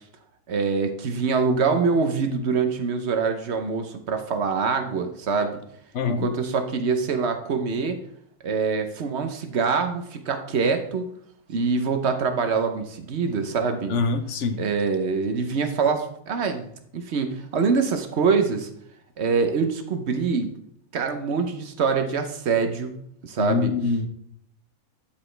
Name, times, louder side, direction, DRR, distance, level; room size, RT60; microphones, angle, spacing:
voice 1, 0.5-5.6 6.1-8.0 8.4-11.1 11.5-14.0 14.6-16.7 16.9-18.7 19.2-20.5 20.9-22.9 23.2-23.7, right 5 dB, 55° right, 7 dB, 1.0 m, -24 dB
voice 2, 5.9-6.3 13.9-14.6 23.4-24.1, left 4 dB, 60° left, 8 dB, 1.0 m, -24 dB
11.5 x 4.9 x 3.3 m, 0.70 s
omnidirectional pair, 1.5 m